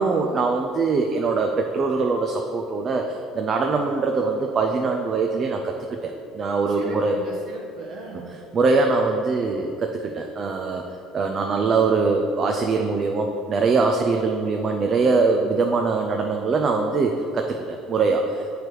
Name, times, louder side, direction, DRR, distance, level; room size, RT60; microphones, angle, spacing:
voice 1, 0.0-5.7 6.0-7.2 8.5-10.8 11.1-18.5, right 4 dB, 35° right, 3 dB, 0.4 m, -22 dB
voice 2, 6.7-8.3, right 3 dB, 60° right, -3 dB, 0.9 m, -38 dB
7.7 x 3.3 x 4.5 m, 2.6 s
cardioid pair, 115°, 0 cm